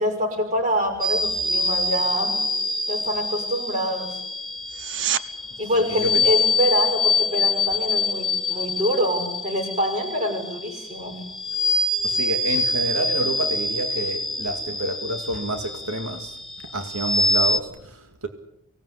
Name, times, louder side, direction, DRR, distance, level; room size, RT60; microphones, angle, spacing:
voice 1, 0.0-2.4 2.9-4.1 5.6-11.2, equal, 35° right, 7.1 m, -25 dB
sound 1, 1.0-17.6, left 2 dB, ahead, 2.2 m, -25 dB
sound 2, 4.6-5.3 16.6-16.7, right 11 dB, 60° right, 1.0 m, -27 dB
voice 2, 5.7-6.3 12.0-18.3, right 1 dB, 90° right, 2.2 m, -29 dB
24.5 x 18.0 x 9.8 m
head